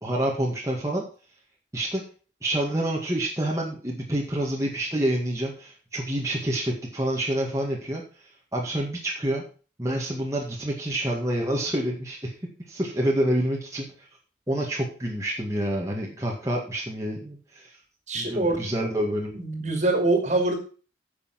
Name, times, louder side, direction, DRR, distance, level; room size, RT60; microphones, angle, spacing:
voice 1, 0.0-1.0 1.7-2.0 2.4-8.0 8.5-9.4 9.8-12.3 12.7-14.1 14.5-17.7 18.1-19.4, right 1 dB, 15° right, -3 dB, 2.0 m, -27 dB
voice 2, 18.1-18.6 19.3-20.6, right 2 dB, 40° right, 4 dB, 2.7 m, -24 dB
10.0 x 7.0 x 5.9 m, 0.37 s
head